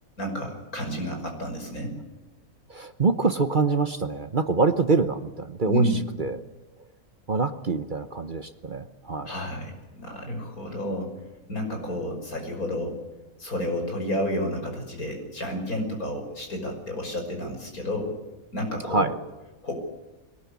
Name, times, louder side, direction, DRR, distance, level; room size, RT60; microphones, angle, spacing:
voice 1, 0.2-2.0 5.7-6.0 9.3-11.1 11.5-13.0 13.4-18.1 18.5-19.1 19.6-19.7, left 1 dB, 85° left, 3 dB, 6.2 m, -30 dB
voice 2, 2.7-5.8 6.2-6.4 7.3-9.3 18.9-19.1, right 4 dB, 40° right, 10 dB, 1.0 m, -25 dB
22.0 x 18.5 x 8.5 m, 1.1 s
omnidirectional pair, 1.5 m